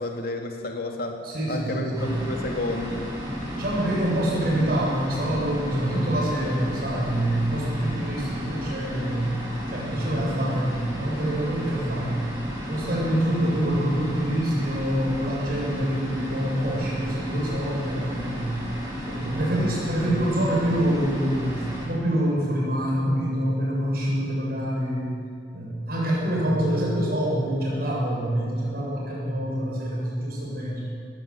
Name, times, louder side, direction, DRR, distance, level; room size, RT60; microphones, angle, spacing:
voice 1, 0.0-1.2 1.5-3.1 3.6-3.7, left 1 dB, 55° left, 2 dB, 2.7 m, -31 dB
voice 2, 1.2-2.1 3.5-9.3 9.7-12.2 12.7-18.5 19.1-25.1 25.5-30.9, right 1 dB, 55° right, -4 dB, 7.6 m, -26 dB
sound 1, 1.9-21.9, equal, 20° right, 7.9 m, -33 dB
19.5 x 16.5 x 8.5 m, 2.3 s
head